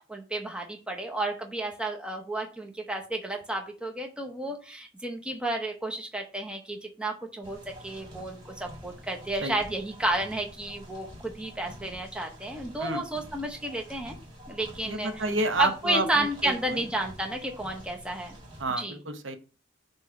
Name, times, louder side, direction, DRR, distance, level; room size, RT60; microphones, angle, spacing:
voice 1, 0.0-7.6 7.8-14.2 14.5-15.1 15.6-18.4 18.8-19.0, right 1 dB, 5° right, 2 dB, 0.8 m, -31 dB
sound 1, 7.4-18.6, equal, 25° right, 1.7 m, -47 dB
voice 2, 14.8-16.8 18.6-19.4, right 2 dB, 65° right, 7 dB, 1.0 m, -30 dB
6.1 x 3.1 x 5.7 m, 0.34 s
head